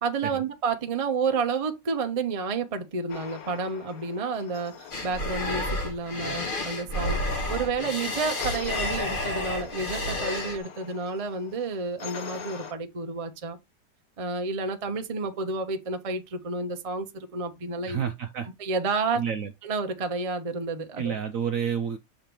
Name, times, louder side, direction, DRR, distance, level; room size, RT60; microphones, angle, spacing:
voice 1, 0.0-13.6 14.2-18.0 18.6-19.2 19.6-21.1, right 4 dB, 35° right, 0.5 m, -30 dB
sound 1, 3.1-6.3 8.4-12.7, left 8 dB, 60° left, 1.3 m, -43 dB
sound 2, 4.9-10.6, left 1 dB, 35° left, 1.2 m, -30 dB
voice 2, 17.9-18.5 19.1-19.5 21.0-22.0, right 8 dB, 65° right, 0.8 m, -29 dB
6.5 x 3.1 x 5.1 m
omnidirectional pair, 1.9 m